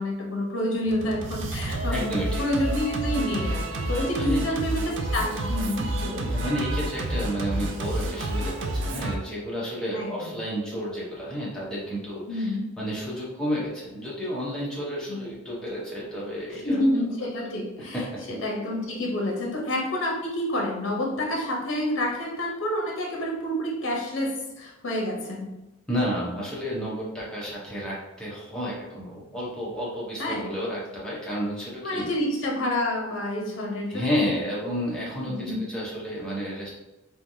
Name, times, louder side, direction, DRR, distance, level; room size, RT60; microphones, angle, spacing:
voice 1, 0.0-6.3 9.9-10.3 12.3-12.7 15.1-15.2 16.6-18.0 18.4-25.5 30.2-30.5 31.8-34.4 35.3-35.6, left 1 dB, 65° left, 0 dB, 0.7 m, -28 dB
Singing, 0.9-9.2, right 1 dB, 60° right, 0.4 m, -29 dB
voice 2, 1.9-2.4 4.2-4.4 6.3-12.5 12.8-16.9 17.2-17.3 17.8-18.2 25.9-32.1 33.9-36.7, equal, 5° left, -7 dB, 0.8 m, -31 dB
3.2 x 2.4 x 2.6 m, 1.0 s
head